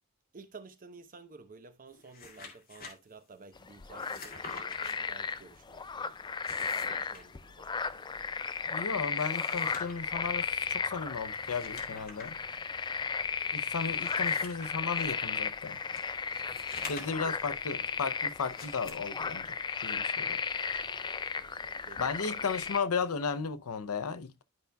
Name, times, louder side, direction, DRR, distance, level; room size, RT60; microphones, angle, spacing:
voice 1, 0.3-6.2 6.6-8.3 21.4-22.8, right 4 dB, 40° right, 0.8 m, -53 dB
sound 1, 1.9-2.9 3.9-4.9 6.3-7.2 9.0-10.1 11.3-12.3 12.9-13.0 13.7-15.1 15.9-17.4 18.4-18.9, left 4 dB, 40° left, 2.3 m, -47 dB
sound 2, 3.6-22.8, left 5 dB, 20° left, 0.4 m, -35 dB
voice 2, 8.7-12.4 13.5-15.8 16.9-20.4 22.0-24.4, left 5 dB, 70° left, 0.6 m, -35 dB
sound 3, 9.6-23.7, right 1 dB, 90° right, 1.1 m, -63 dB
12.5 x 5.1 x 2.2 m
head